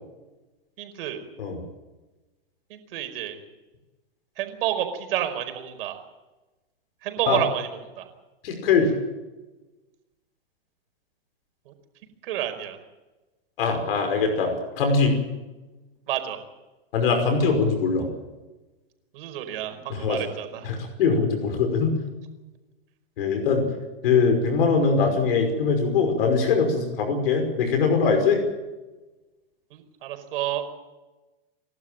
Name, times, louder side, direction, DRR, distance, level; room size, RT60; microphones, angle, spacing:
voice 1, 0.8-1.2 2.7-3.4 4.4-6.0 7.0-7.7 8.0-8.1 11.6-11.7 12.2-12.8 16.1-16.4 19.1-20.6 29.7-30.6, right 11 dB, 70° right, 7 dB, 5.1 m, -29 dB
voice 2, 8.4-8.9 13.6-15.2 16.9-18.1 19.9-20.2 20.6-21.9 23.2-23.7 24.0-28.4, left 5 dB, 70° left, 5 dB, 5.6 m, -22 dB
29.5 x 12.0 x 9.0 m, 1.1 s
hypercardioid pair, 120°, 29 cm